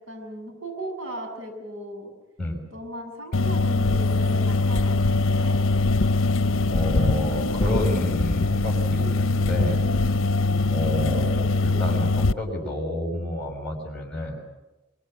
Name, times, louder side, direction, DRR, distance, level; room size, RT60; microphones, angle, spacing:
voice 1, 0.0-2.1 2.7-5.6 11.0-11.4, equal, 85° right, 4 dB, 7.5 m, -37 dB
sound 1, 3.3-12.3, left 3 dB, 75° left, 0.8 m, -22 dB
voice 2, 6.7-10.0 10.7-14.4, left 1 dB, 5° left, 0 dB, 6.3 m, -29 dB
24.5 x 22.5 x 8.0 m, 1.0 s
head